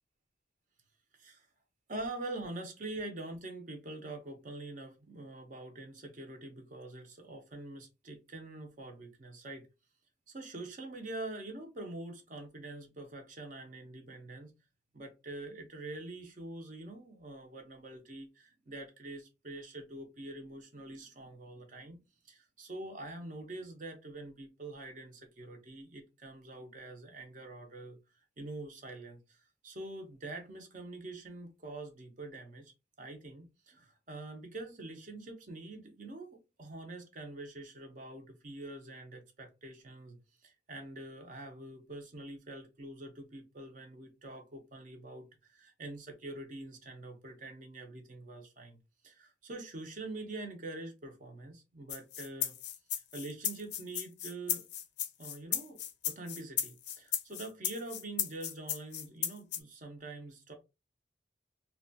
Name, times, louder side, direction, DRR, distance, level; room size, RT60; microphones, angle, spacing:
voice 1, 1.9-9.7 10.3-14.5 14.9-48.8 49.0-52.6 53.1-54.7 55.2-60.5, right 2 dB, 45° right, 0.6 m, -45 dB
Salsa Eggs - Black Egg (raw), 51.9-59.6, left 10 dB, 80° left, 0.5 m, -35 dB
2.9 x 2.2 x 2.6 m
head